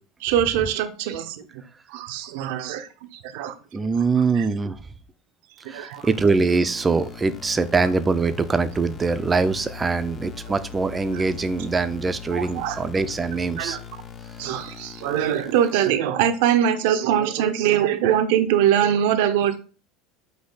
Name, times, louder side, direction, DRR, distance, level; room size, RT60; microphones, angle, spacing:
voice 1, 0.2-1.4 1.9-2.9 3.2-3.5 4.3-4.5 5.6-6.0 11.1-11.2 12.3-12.8 13.6-13.8 14.4-19.6, right 10 dB, 75° right, 9 dB, 0.6 m, -22 dB
voice 2, 3.7-4.8 5.7-13.8, right 4 dB, 15° right, 12 dB, 0.4 m, -23 dB
sound 1, 5.9-15.9, left 7 dB, 30° left, 0.6 m, -40 dB
4.1 x 2.7 x 3.9 m, 0.37 s
supercardioid pair, 135°, 0 cm